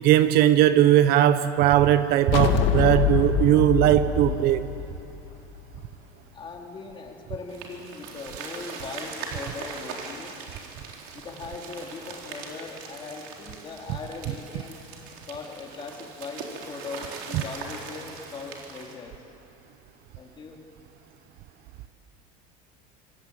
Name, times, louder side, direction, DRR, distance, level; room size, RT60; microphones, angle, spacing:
voice 1, 0.0-4.7, right 12 dB, 50° right, 0.9 m, -19 dB
sound 1, 2.3-5.8, left 9 dB, 65° left, 1.8 m, -25 dB
voice 2, 6.3-10.4 11.1-14.9 15.3-19.2 20.2-20.6, left 4 dB, 25° left, 3.6 m, -39 dB
sound 2, 7.5-19.0, right 5 dB, 70° right, 4.2 m, -40 dB
25.0 x 24.0 x 9.0 m
cardioid pair, 140°, 20 cm